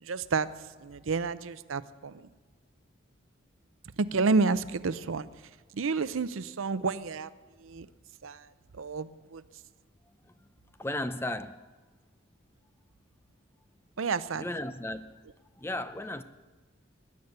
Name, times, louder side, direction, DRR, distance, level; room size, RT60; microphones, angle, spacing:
voice 1, 0.0-0.5 0.8-2.3 4.0-5.3 5.7-7.3 7.6-7.9 8.2-8.5 8.7-9.4 14.0-14.4, right 4 dB, 85° right, 0.6 m, -30 dB
voice 2, 10.8-11.7 14.3-15.2 15.6-16.2, left 1 dB, 10° left, 0.5 m, -35 dB
20.5 x 9.6 x 6.7 m
head